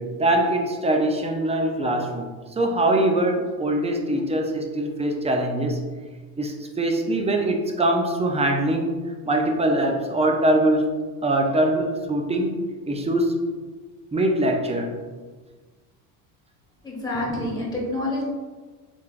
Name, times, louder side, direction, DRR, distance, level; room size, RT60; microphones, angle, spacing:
voice 1, 0.0-2.3 2.6-5.8 6.4-8.9 9.3-10.9 11.2-12.6 12.9-13.3 14.1-15.0, right 1 dB, 15° right, 3 dB, 0.5 m, -22 dB
voice 2, 16.8-18.2, left 1 dB, 10° left, -4 dB, 1.4 m, -27 dB
3.5 x 3.3 x 2.4 m, 1.4 s
supercardioid pair, 85°, 41 cm